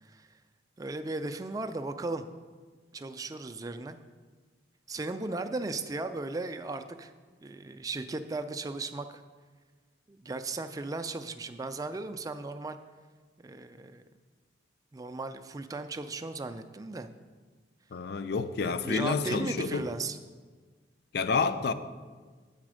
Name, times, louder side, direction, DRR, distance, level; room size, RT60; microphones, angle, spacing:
voice 1, 0.0-0.3 0.8-2.2 2.9-4.0 4.9-7.1 7.4-9.2 10.1-12.8 13.4-14.0 14.9-17.1 18.8-20.2, right 3 dB, 20° right, 9 dB, 0.3 m, -36 dB
voice 2, 17.9-19.9 21.1-21.7, left 4 dB, 55° left, 12 dB, 0.4 m, -29 dB
8.7 x 4.1 x 6.2 m, 1.5 s
head